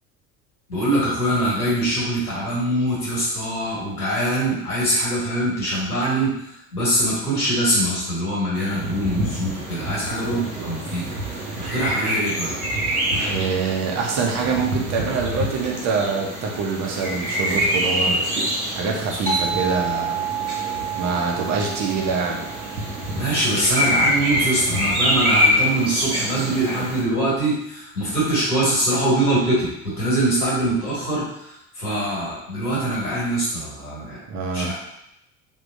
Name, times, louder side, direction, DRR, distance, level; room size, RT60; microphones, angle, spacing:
voice 1, 0.7-11.4 11.7-12.6 23.1-34.2 34.5-34.7, right 1 dB, 80° left, -6 dB, 1.5 m, -23 dB
sound 1, 8.5-27.0, equal, 75° right, 0.9 m, -26 dB
voice 2, 13.2-18.4 18.7-20.3 20.9-22.4 34.3-34.7, right 4 dB, 35° right, 0 dB, 0.8 m, -25 dB
sound 2, 19.3-24.2, right 6 dB, 5° left, 0.5 m, -30 dB
3.6 x 2.7 x 2.6 m, 0.79 s
figure-of-eight pair, 65°, 44 cm